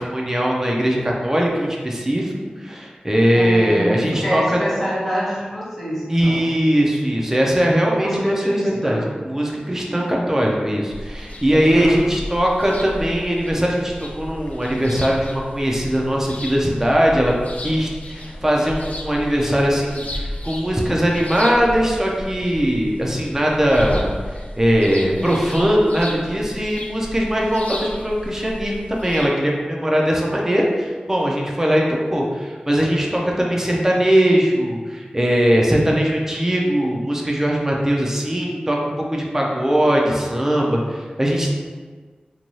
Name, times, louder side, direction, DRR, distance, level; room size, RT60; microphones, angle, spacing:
voice 1, 0.0-2.3 2.6-4.6 6.1-8.1 8.6-9.0 9.2-17.3 17.6-24.1 24.6-41.5, equal, 15° right, -2 dB, 0.5 m, -20 dB
voice 2, 3.3-6.8 7.9-9.0 9.9-10.3 11.7-12.0, equal, 10° left, -7 dB, 1.1 m, -26 dB
sound 1, 10.9-29.3, left 1 dB, 55° left, 0.3 m, -34 dB
2.6 x 2.2 x 3.0 m, 1.4 s
wide cardioid pair, 55°, 3 cm